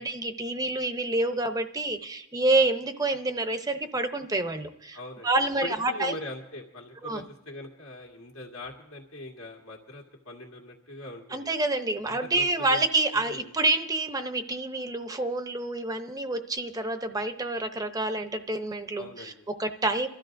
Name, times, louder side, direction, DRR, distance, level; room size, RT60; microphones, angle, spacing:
voice 1, 0.0-6.2 7.0-7.2 11.3-19.3 19.6-20.1, right 2 dB, 20° right, 8 dB, 0.7 m, -28 dB
voice 2, 4.9-5.3 5.6-11.5 12.0-12.8 13.1-13.5 19.0-19.5, left 1 dB, 85° left, -1 dB, 1.9 m, -42 dB
27.0 x 13.5 x 2.6 m, 0.96 s
head